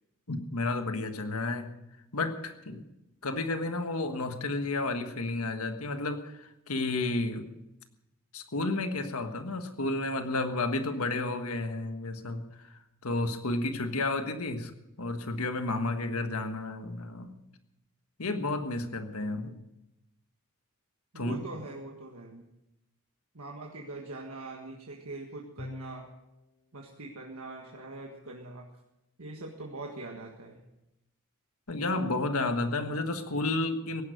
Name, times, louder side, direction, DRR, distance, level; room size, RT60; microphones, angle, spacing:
voice 1, 0.3-1.7 2.1-2.8 3.2-7.5 8.3-12.7 13.0-17.4 18.2-19.6 21.1-21.4 31.7-34.0, left 2 dB, 75° left, 7 dB, 1.5 m, -31 dB
voice 2, 21.1-22.4 23.3-26.1 26.7-28.7 29.2-30.6, right 2 dB, 70° right, 0 dB, 1.6 m, -42 dB
Bowed string instrument, 25.6-26.5, left 2 dB, 25° left, 0.5 m, -44 dB
17.0 x 11.0 x 6.5 m, 0.90 s
head